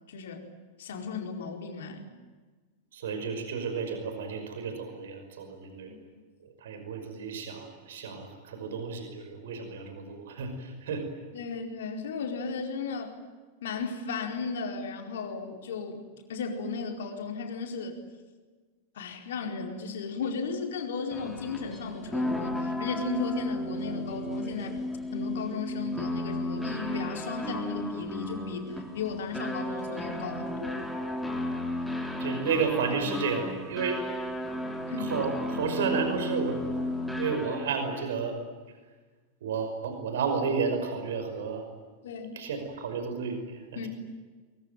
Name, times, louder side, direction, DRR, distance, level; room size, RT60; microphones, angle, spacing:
voice 1, 0.1-0.4 0.8-2.1 5.9-6.0 11.3-13.2 13.6-18.0 18.9-24.8 25.1-30.9 34.9-35.1 42.0-42.3 43.8-43.9, left 4 dB, 60° left, 3 dB, 4.6 m, -35 dB
voice 2, 2.9-5.9 6.4-11.1 32.0-34.0 35.0-36.6 37.1-38.3 39.4-41.7 42.3-43.9, right 5 dB, 60° right, 6 dB, 5.5 m, -32 dB
sound 1, 21.1-37.8, left 1 dB, ahead, 4.0 m, -34 dB
24.0 x 24.0 x 9.3 m, 1.4 s
figure-of-eight pair, 90°, 0 cm